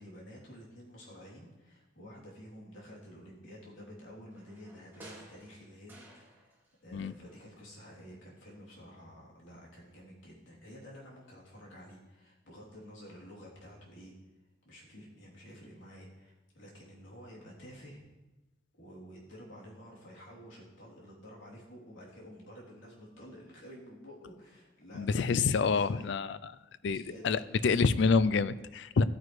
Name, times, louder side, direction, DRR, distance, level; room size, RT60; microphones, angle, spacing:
voice 1, 0.0-6.5 6.8-14.1 14.6-18.0 18.8-25.5 25.7-25.9 26.8-27.6, equal, 80° left, -5 dB, 3.2 m, -51 dB
sound 1, 4.3-6.8 7.0-8.1 8.4-8.5, right 2 dB, 10° right, 2.1 m, -56 dB
voice 2, 24.9-26.6 26.8-29.0, left 4 dB, 60° left, 16 dB, 0.4 m, -27 dB
14.0 x 9.3 x 3.2 m, 1.1 s
head